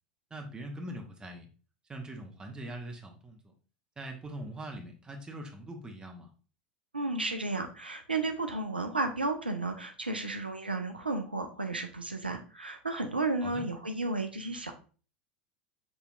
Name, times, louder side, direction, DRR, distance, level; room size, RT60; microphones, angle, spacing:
voice 1, 0.3-1.5 1.9-3.5 4.0-6.3 13.4-13.6, right 1 dB, 15° right, 2 dB, 0.9 m, -42 dB
voice 2, 6.9-14.7, right 2 dB, 85° right, 6 dB, 0.4 m, -33 dB
6.2 x 2.8 x 2.4 m, 0.38 s
figure-of-eight pair, 80°, 5 cm